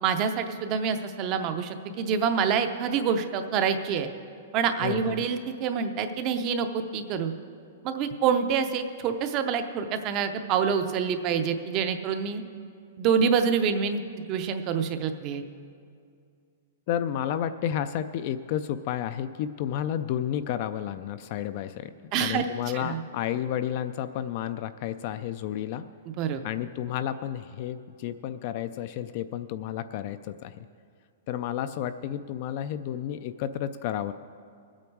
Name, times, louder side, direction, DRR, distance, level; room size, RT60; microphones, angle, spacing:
voice 1, 0.0-4.1 4.5-7.3 7.8-12.4 13.0-14.0 14.3-15.4 22.1-22.4 22.7-23.0 26.2-26.4, right 6 dB, 25° right, 8 dB, 0.5 m, -26 dB
voice 2, 4.8-5.2 16.9-25.8 26.4-30.7 31.3-34.1, left 10 dB, 30° left, 11 dB, 0.3 m, -31 dB
21.0 x 8.7 x 4.6 m, 2.3 s
hypercardioid pair, 180°, 0 cm